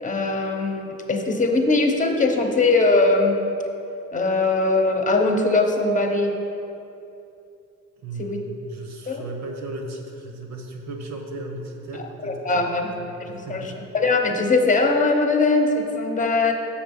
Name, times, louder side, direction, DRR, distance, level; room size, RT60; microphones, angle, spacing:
voice 1, 0.0-3.4 4.1-6.3 8.2-8.4 9.1-9.2 11.9-12.9 13.2-16.5, left 3 dB, 25° left, 4 dB, 1.0 m, -21 dB
voice 2, 8.0-13.8, right 2 dB, 65° right, 3 dB, 1.2 m, -36 dB
6.7 x 6.7 x 5.5 m, 2.7 s
cardioid pair, 90°, 30 cm